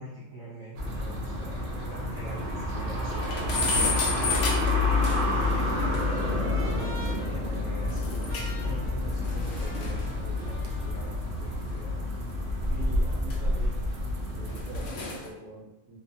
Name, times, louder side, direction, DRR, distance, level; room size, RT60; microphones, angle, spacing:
voice 1, 0.0-4.5 5.4-12.2, equal, 40° left, -11 dB, 0.8 m, -43 dB
sound 1, 0.8-14.9, left 2 dB, 90° right, 0.5 m, -29 dB
sound 2, 1.1-1.2 1.6-1.7 2.0-2.1 2.4-2.5 2.9-5.5 5.9-6.0 7.9-8.6 8.9-11.6 12.4-14.0 14.5-15.3, left 2 dB, 85° left, 0.5 m, -31 dB
Trumpet, 5.6-11.2, right 1 dB, 20° left, 0.3 m, -47 dB
voice 2, 12.7-13.8 14.3-16.0, right 2 dB, 75° right, -7 dB, 1.0 m, -44 dB
2.6 x 2.2 x 2.5 m, 0.99 s
omnidirectional pair, 1.7 m